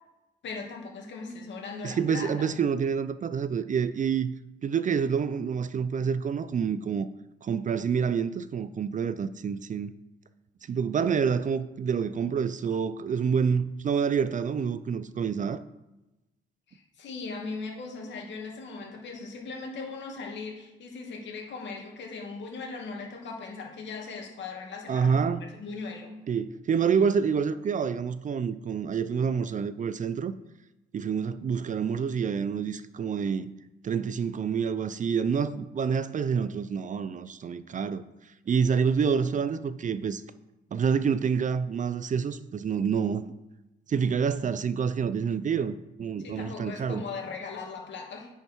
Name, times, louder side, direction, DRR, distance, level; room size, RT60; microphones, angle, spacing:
voice 1, 0.4-2.3 16.7-25.2 25.6-26.2 46.2-48.3, left 4 dB, 65° left, 2.3 m, -39 dB
voice 2, 1.8-4.3 4.6-7.1 7.4-9.9 10.7-15.6 24.9-25.4 26.3-30.3 30.9-33.5 33.8-38.0 38.5-40.2 40.7-43.3 43.9-47.0, right 6 dB, 40° right, 0.5 m, -27 dB
9.8 x 5.7 x 4.6 m
cardioid pair, 90°, 20 cm